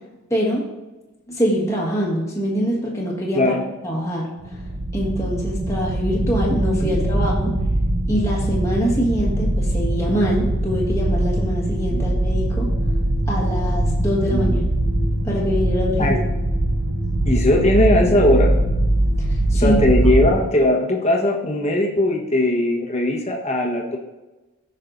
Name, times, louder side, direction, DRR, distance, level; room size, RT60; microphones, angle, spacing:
voice 1, 0.3-0.6 1.3-3.5 3.8-4.7 4.9-7.5 8.1-12.7 13.3-14.6 15.2-16.2 19.2-19.8, equal, 15° left, -4 dB, 1.5 m, -24 dB
sound 1, 4.4-20.3, right 1 dB, 65° right, 1.2 m, -21 dB
voice 2, 6.8-7.3 11.9-12.0 14.3-14.4 16.0-16.1 17.2-18.5 19.5-24.0, left 1 dB, 30° left, -1 dB, 1.2 m, -19 dB
14.0 x 5.7 x 2.6 m, 1.1 s
head